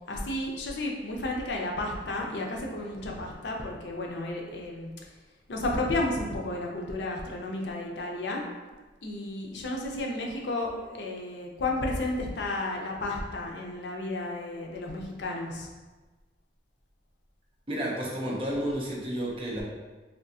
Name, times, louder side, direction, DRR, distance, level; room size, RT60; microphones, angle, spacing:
voice 1, 0.1-4.9 5.5-8.4 9.0-15.7, left 2 dB, 80° left, 0 dB, 0.5 m, -32 dB
voice 2, 17.7-19.6, equal, 30° right, -3 dB, 0.6 m, -31 dB
3.5 x 2.3 x 2.7 m, 1.3 s
head